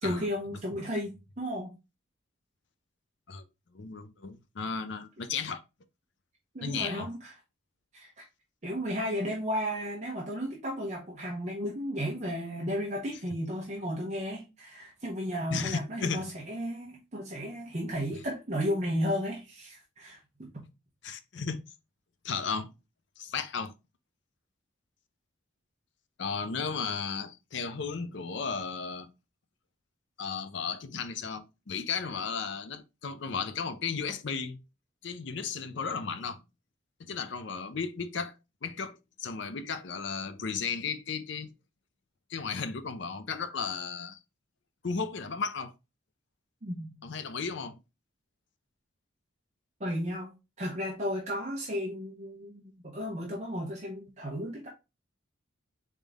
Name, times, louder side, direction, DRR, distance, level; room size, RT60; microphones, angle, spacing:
voice 1, 0.0-1.7 6.5-7.3 7.9-8.2 8.6-20.7 46.6-47.0 49.8-50.3 50.6-54.7, equal, 35° right, 0.9 m, -34 dB
voice 2, 3.7-5.6 6.6-7.1 15.5-16.3 21.0-21.6 22.2-22.7 23.2-23.7 26.2-29.1 30.2-34.6 35.0-36.4 37.0-38.4 38.6-41.5 42.3-44.2 44.8-45.7 47.0-47.8, left 5 dB, 60° left, 0.5 m, -34 dB
3.9 x 3.6 x 3.5 m
head